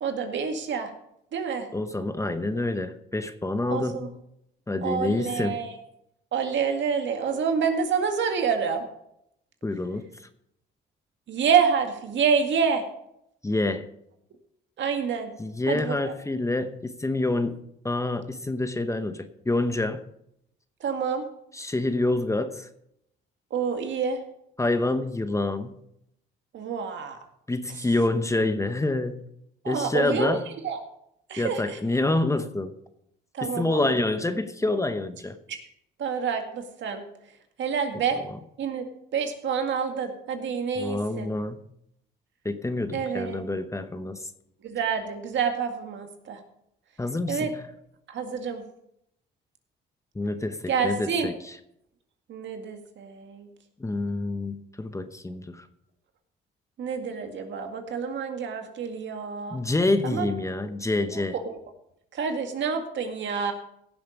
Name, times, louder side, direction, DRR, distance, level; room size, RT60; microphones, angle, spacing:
voice 1, 0.0-0.9 1.3-1.7 3.7-4.1 4.8-5.8 6.3-8.9 11.3-12.8 14.8-15.3 15.7-16.1 20.8-21.2 23.5-24.2 26.5-27.2 29.6-30.4 30.6-30.8 31.3-31.8 33.3-33.9 35.5-35.6 36.0-37.0 37.6-38.2 38.6-38.8 39.1-41.3 42.9-43.4 44.6-46.4 47.3-47.5 48.1-48.6 50.7-51.3 52.3-53.5 56.8-59.6 60.0-60.3 61.1-61.6 62.1-63.5, right 6 dB, 70° right, 5 dB, 1.9 m, -27 dB
voice 2, 1.7-4.2 4.7-5.6 9.6-10.1 13.4-13.9 15.4-20.1 21.5-22.7 24.6-25.7 27.5-29.3 29.7-30.4 31.4-32.7 33.4-35.4 40.8-41.6 42.4-44.3 47.0-47.6 50.1-51.6 53.8-55.7 59.5-61.4, left 2 dB, 15° left, 10 dB, 0.9 m, -27 dB
16.0 x 7.2 x 5.2 m, 0.77 s
cardioid pair, 90°, 20 cm